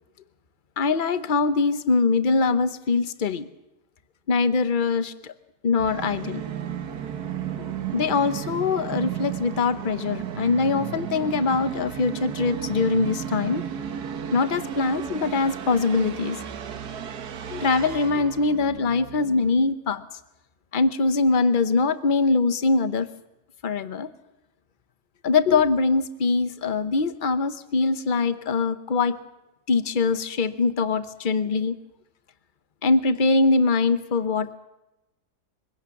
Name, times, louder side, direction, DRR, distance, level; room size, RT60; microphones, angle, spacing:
voice 1, 0.8-3.5 4.3-5.3 5.6-6.4 7.9-13.6 14.3-16.4 17.5-20.0 20.7-23.1 23.6-24.1 25.2-29.2 29.7-31.8 32.8-34.6, left 4 dB, 35° left, 12 dB, 0.9 m, -23 dB
Musical instrument, 5.8-19.5, right 9 dB, 70° right, 1.6 m, -34 dB
23.5 x 17.0 x 7.2 m, 0.95 s
omnidirectional pair, 1.8 m